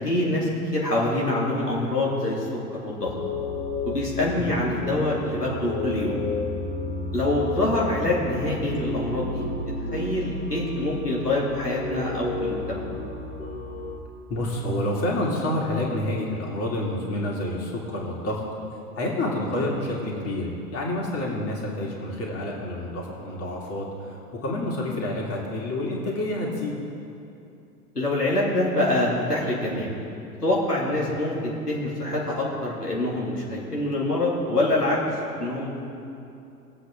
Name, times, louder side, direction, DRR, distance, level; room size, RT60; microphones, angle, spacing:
voice 1, 0.0-2.4 2.8-3.1 3.9-6.2 7.1-9.5 9.9-12.8 27.9-29.9 30.4-35.0 35.4-35.7, left 1 dB, 90° left, -5 dB, 2.3 m, -25 dB
sound 1, 3.0-14.0, left 3 dB, 50° left, 1.6 m, -32 dB
voice 2, 14.3-18.4 19.0-26.7 30.9-31.1, left 1 dB, 30° left, -2 dB, 2.6 m, -28 dB
21.0 x 8.0 x 3.7 m, 2.7 s
figure-of-eight pair, 90°, 46 cm